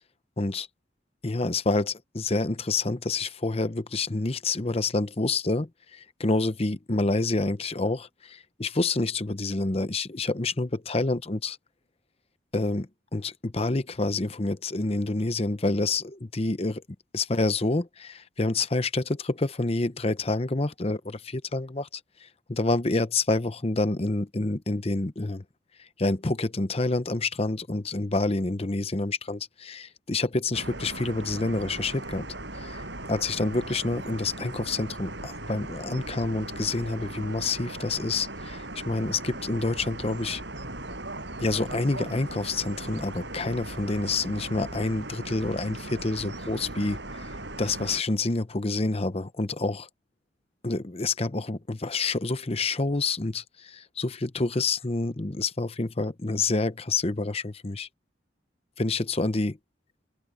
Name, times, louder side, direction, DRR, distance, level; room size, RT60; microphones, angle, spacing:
voice 1, 0.4-0.7 1.2-11.6 12.5-16.8 17.1-21.9 22.5-25.4 26.0-32.3 32.5-32.8 33.1-40.4 41.4-47.2 47.6-49.9 50.6-57.9 58.8-59.6, left 3 dB, 30° left, 0.8 m, -28 dB
sound 1, 30.5-48.0, right 2 dB, 65° right, 7.8 m, -38 dB
head